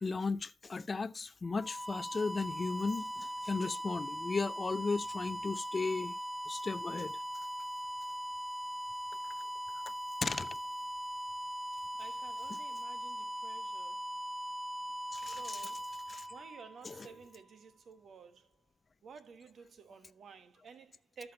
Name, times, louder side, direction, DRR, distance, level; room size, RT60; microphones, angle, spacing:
voice 1, 0.0-6.1 6.5-7.2 10.2-10.6 15.1-15.6 16.1-16.3 16.8-17.1, left 4 dB, 35° left, 0.6 m, -35 dB
sound 1, 1.4-17.2, equal, 5° right, 0.8 m, -40 dB
voice 2, 12.0-14.0 15.1-16.0 16.3-18.6 19.0-21.3, right 5 dB, 60° right, 1.6 m, -54 dB
13.0 x 5.9 x 4.2 m
supercardioid pair, 55°, 0 cm